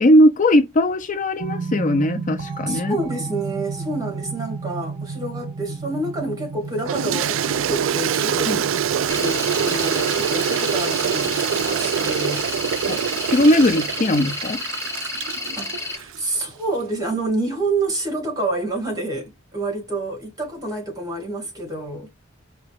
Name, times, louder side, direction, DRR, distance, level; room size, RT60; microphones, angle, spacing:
voice 1, 0.0-3.0 8.5-8.6 12.9-14.6, left 1 dB, 40° left, 0.5 m, -18 dB
sound 1, 1.4-14.0, right 4 dB, 45° right, 0.7 m, -34 dB
voice 2, 2.7-8.6 9.2-12.5 15.5-22.2, right 2 dB, 20° right, 2.1 m, -28 dB
Toilet flush, 6.9-16.2, right 8 dB, 75° right, 0.4 m, -24 dB
sound 2, 9.1-16.0, left 4 dB, 15° left, 0.8 m, -31 dB
5.0 x 2.8 x 3.4 m
head